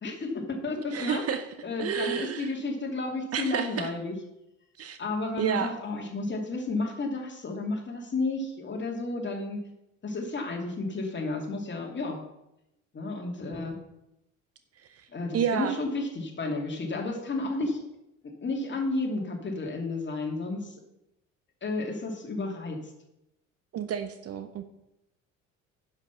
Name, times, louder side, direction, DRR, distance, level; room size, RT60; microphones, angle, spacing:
voice 1, 0.0-1.2 1.6-4.1 5.0-9.6 10.0-12.2 12.9-13.8 15.1-17.8 18.2-20.7 21.6-22.8, left 2 dB, 25° left, 2 dB, 2.7 m, -32 dB
voice 2, 0.9-1.5 1.8-2.5 3.3-3.9 4.8-5.0 5.4-5.7 14.9-15.1 15.3-15.7 23.7-24.6, right 8 dB, 35° right, 10 dB, 0.8 m, -30 dB
10.5 x 6.5 x 5.9 m, 0.87 s
figure-of-eight pair, 55°, 41 cm